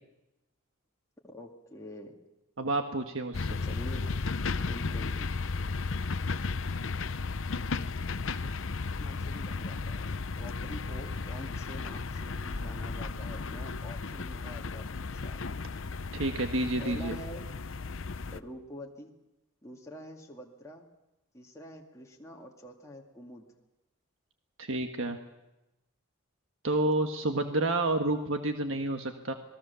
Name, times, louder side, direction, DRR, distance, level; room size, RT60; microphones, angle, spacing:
voice 1, 1.2-2.2 3.6-4.1 4.6-5.3 8.4-8.6 9.0-15.4 16.8-17.4 18.3-19.1 19.6-20.9 21.3-23.5, equal, 15° left, -1 dB, 2.3 m, -46 dB
voice 2, 2.6-3.5 16.1-17.2 24.6-25.2 26.6-29.3, right 2 dB, 65° right, 6 dB, 1.5 m, -29 dB
sound 1, 3.3-18.4, left 4 dB, 60° left, 0.8 m, -34 dB
sound 2, 12.4-16.2 16.5-16.6, left 1 dB, 45° left, 1.8 m, -48 dB
26.5 x 20.5 x 7.0 m, 0.95 s
head